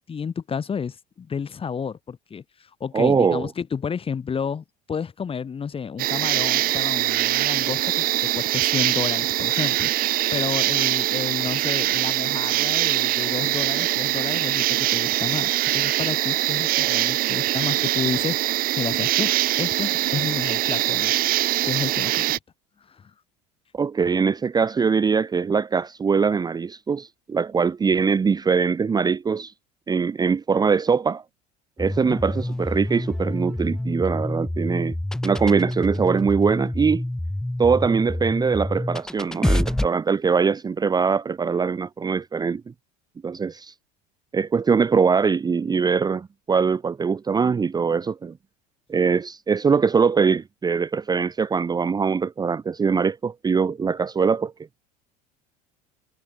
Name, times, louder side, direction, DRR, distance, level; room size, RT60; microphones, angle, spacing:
voice 1, 0.0-9.9 10.3-19.3 19.6-21.4 21.6-22.4 22.9-23.1 32.1-32.2, left 6 dB, 25° left, 3.7 m, -31 dB
voice 2, 2.9-3.5 23.7-29.5 29.9-31.2 31.8-34.9 35.2-37.0 37.6-42.6 43.2-43.7 44.3-48.3 48.9-54.5, right 5 dB, 20° right, 0.9 m, -22 dB
sound 1, 6.0-22.4, right 16 dB, 45° right, 0.6 m, -23 dB
sound 2, 31.8-39.9, left 1 dB, 5° left, 0.4 m, -27 dB
supercardioid pair, 105°, 20 cm